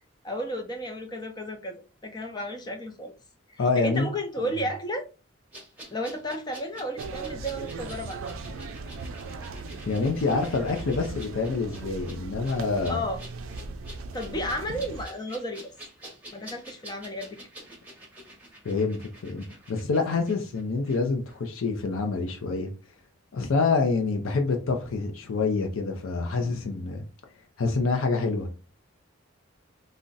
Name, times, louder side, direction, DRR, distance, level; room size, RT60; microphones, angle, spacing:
voice 1, 0.2-3.1 3.5-5.1 5.9-8.2 12.9-13.2 14.1-15.7 16.0-17.4, equal, 20° left, 0.4 m, -33 dB
voice 2, 3.6-4.1 9.9-13.0 18.6-22.7 23.3-27.0 27.6-28.5, left 4 dB, 80° left, 0.5 m, -27 dB
sound 1, 5.5-21.0 21.3-21.4, right 1 dB, 10° right, 0.7 m, -48 dB
sound 2, 7.0-15.1, right 3 dB, 80° right, 0.4 m, -38 dB
2.4 x 2.1 x 3.8 m
head